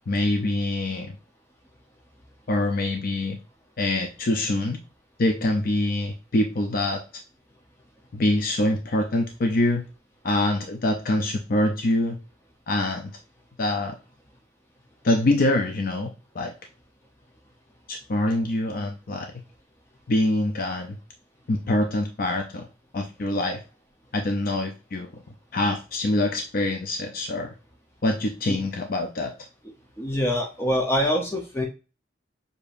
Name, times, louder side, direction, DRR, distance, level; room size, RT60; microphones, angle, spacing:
voice 1, 0.1-1.2 2.5-3.4 3.8-4.8 5.2-7.2 8.1-9.8 10.2-12.2 12.7-13.1 13.6-13.9 15.0-16.5 17.9-19.3 20.1-21.0 21.5-22.7 22.9-23.6 24.1-25.1 25.5-27.5 28.0-29.3, left 1 dB, 50° left, 4 dB, 0.5 m, -25 dB
voice 2, 30.0-31.7, equal, 15° left, 1 dB, 0.7 m, -24 dB
6.8 x 2.7 x 2.5 m, 0.32 s
head